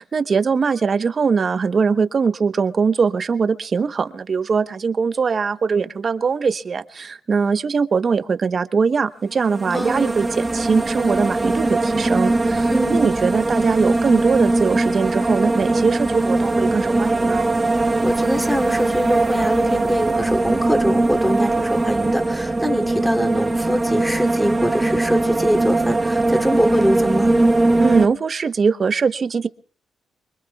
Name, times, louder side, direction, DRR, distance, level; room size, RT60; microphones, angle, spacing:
voice 1, 0.0-17.5 27.8-29.5, right 5 dB, 50° right, 11 dB, 1.0 m, -21 dB
sound 1, 9.3-28.1, right 2 dB, 25° right, 1.1 m, -20 dB
voice 2, 9.7-10.2 12.7-13.1 18.0-27.4, equal, ahead, 4 dB, 2.9 m, -23 dB
25.0 x 23.5 x 2.4 m, 0.44 s
supercardioid pair, 55°, 0 cm